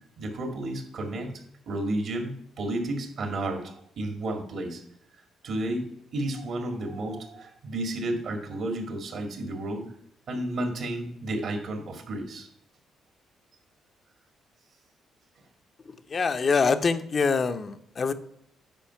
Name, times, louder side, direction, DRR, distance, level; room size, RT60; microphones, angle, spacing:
voice 1, 0.2-4.8 5.4-9.9 10.3-12.5, right 1 dB, 65° right, 5 dB, 2.0 m, -32 dB
voice 2, 16.1-18.1, left 5 dB, 40° left, 8 dB, 0.6 m, -24 dB
9.0 x 4.9 x 5.8 m, 0.69 s
cardioid pair, 90°, 0 cm